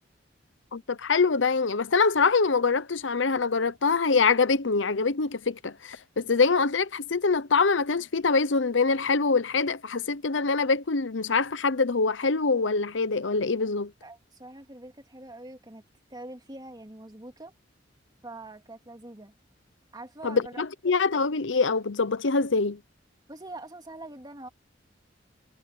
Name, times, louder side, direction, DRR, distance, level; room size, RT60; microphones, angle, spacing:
voice 1, 0.7-13.9 20.2-22.8, left 4 dB, 80° left, 0.8 m, -24 dB
voice 2, 14.0-15.8 16.1-17.5 18.2-19.3 19.9-20.6 23.3-24.5, right 2 dB, 20° right, 3.0 m, -44 dB
head